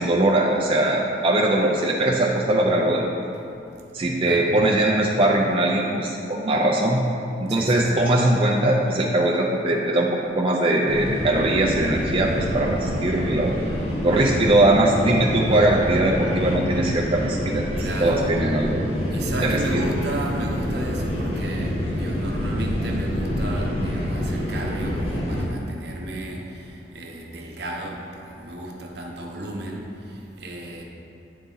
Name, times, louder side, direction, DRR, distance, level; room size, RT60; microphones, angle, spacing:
voice 1, 0.0-3.1 3.9-7.0 7.4-10.1 10.4-13.6 14.0-18.9 19.4-19.8, right 1 dB, 30° right, -2 dB, 0.5 m, -21 dB
voice 2, 7.5-7.9 17.8-18.3 19.1-30.8, right 1 dB, 65° right, 0 dB, 0.9 m, -33 dB
sound 1, 10.9-25.4, equal, 35° left, 1.2 m, -27 dB
9.4 x 4.0 x 3.8 m, 2.6 s
head